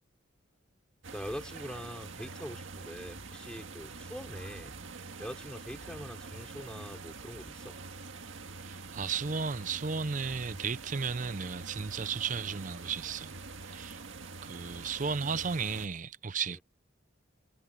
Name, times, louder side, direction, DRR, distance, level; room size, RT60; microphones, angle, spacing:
sound 1, 1.0-15.9, right 4 dB, 75° right, 1.8 m, -45 dB
voice 1, 1.1-4.7 5.2-7.8 16.5-16.6, equal, 5° left, 5.1 m, -43 dB
voice 2, 8.6-14.0 14.4-16.6, right 5 dB, 40° right, 0.5 m, -34 dB
head